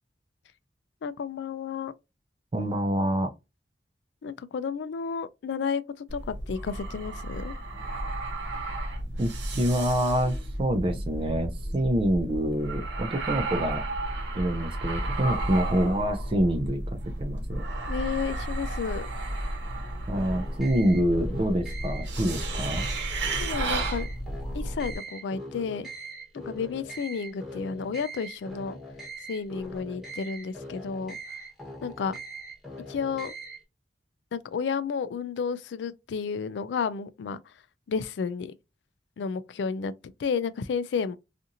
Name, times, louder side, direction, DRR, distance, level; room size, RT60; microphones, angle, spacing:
voice 1, 1.0-1.9 4.2-7.5 17.9-19.1 23.4-24.1 24.5-25.9 26.3-28.8 29.3-31.2 31.8-32.2 32.9-33.3 34.3-37.4 37.9-38.5 39.2-39.9 40.2-41.2, left 6 dB, 75° left, 0.3 m, -32 dB
voice 2, 2.5-3.3 9.2-13.8 14.3-17.6 20.1-22.9, right 1 dB, 30° right, 0.4 m, -26 dB
sound 1, 6.1-24.9, right 2 dB, 80° right, 0.9 m, -32 dB
sound 2, 20.1-33.6, right 1 dB, ahead, 1.0 m, -42 dB
2.8 x 2.5 x 2.5 m
head